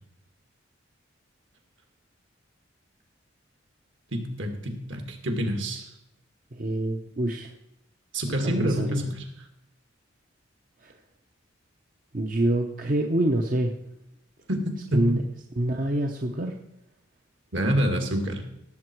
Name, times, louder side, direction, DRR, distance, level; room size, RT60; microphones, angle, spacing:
voice 1, 4.1-5.9 8.1-9.2 14.5-14.6 14.9-15.0 17.5-18.4, equal, 65° right, 4 dB, 2.1 m, -27 dB
voice 2, 6.5-7.5 8.4-9.0 10.8-10.9 12.1-13.7 14.9-15.2 15.6-16.5, right 1 dB, 45° right, 3 dB, 0.8 m, -26 dB
17.0 x 7.8 x 4.6 m, 0.82 s
head